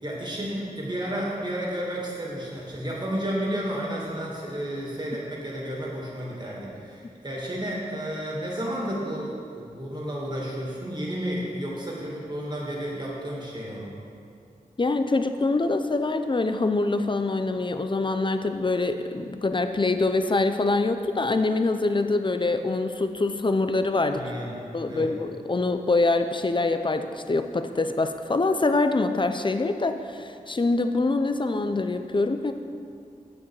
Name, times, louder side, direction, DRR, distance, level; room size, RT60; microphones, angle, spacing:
voice 1, 0.0-13.9 24.1-25.1, equal, 30° right, -4 dB, 2.3 m, -32 dB
voice 2, 14.8-24.2 24.7-32.5, left 3 dB, 35° left, 8 dB, 0.6 m, -24 dB
8.6 x 7.0 x 4.8 m, 2.4 s
wide cardioid pair, 55°, 15 cm